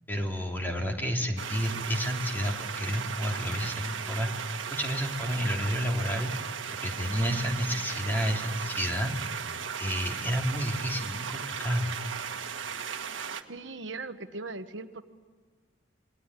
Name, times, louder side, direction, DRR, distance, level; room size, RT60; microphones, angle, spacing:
voice 1, 0.1-6.5 6.8-9.1 9.8-11.9, equal, 10° left, 1 dB, 3.2 m, -30 dB
sound 1, 1.4-13.4, right 7 dB, 90° right, 1.6 m, -36 dB
voice 2, 13.5-15.0, right 3 dB, 70° right, 9 dB, 1.2 m, -39 dB
28.0 x 21.0 x 9.9 m, 1.5 s
head